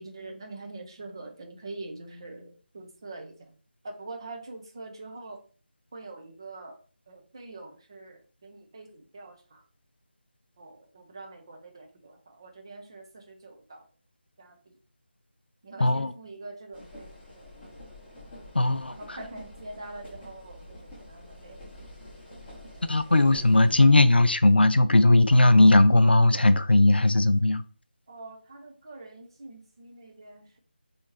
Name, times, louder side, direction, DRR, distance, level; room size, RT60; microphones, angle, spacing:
voice 1, 0.0-3.6 3.8-5.4 5.9-6.8 7.1-9.6 10.6-13.9 14.4-14.8 15.6-17.6 18.9-21.7 22.5-24.2 28.1-30.6, right 2 dB, 25° right, 0.5 m, -44 dB
voice 2, 15.8-16.1 18.5-19.2 22.9-27.6, left 2 dB, 70° left, 0.4 m, -18 dB
sound 1, 16.7-23.8, left 1 dB, 10° left, 1.0 m, -47 dB
4.3 x 2.8 x 3.1 m
figure-of-eight pair, 160°, 6 cm